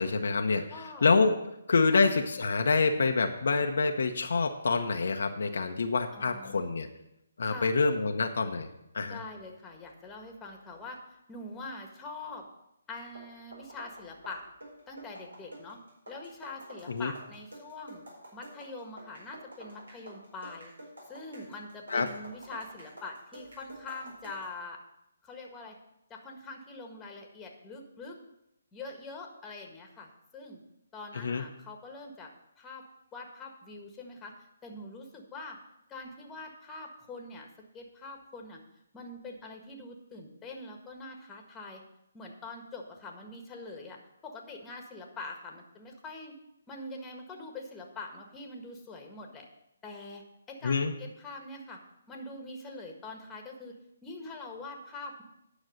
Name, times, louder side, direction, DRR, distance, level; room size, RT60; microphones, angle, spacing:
voice 1, 0.0-0.6 1.0-1.4 1.7-6.9 7.4-8.7 8.9-9.2 16.9-17.1 21.9-22.1 31.1-31.4 50.6-50.9, left 4 dB, 65° left, 5 dB, 0.8 m, -26 dB
voice 2, 0.7-1.2 1.9-2.0 6.1-6.7 7.4-7.7 9.1-11.0 11.3-12.5 12.9-14.4 14.9-15.8 16.1-18.0 18.3-20.7 21.1-24.8 25.2-25.8 26.1-28.2 28.7-30.6 30.9-32.3 32.6-32.8 33.1-34.3 34.6-35.6 35.9-37.5 37.7-38.6 38.9-41.8 42.1-46.3 46.7-49.5 49.8-50.2 50.5-51.8 52.1-53.8 54.0-55.2, left 2 dB, 10° left, 2 dB, 1.6 m, -44 dB
sound 1, 13.0-24.5, right 1 dB, 80° right, 4.6 m, -49 dB
9.8 x 6.1 x 6.4 m, 0.83 s
figure-of-eight pair, 145°, 0 cm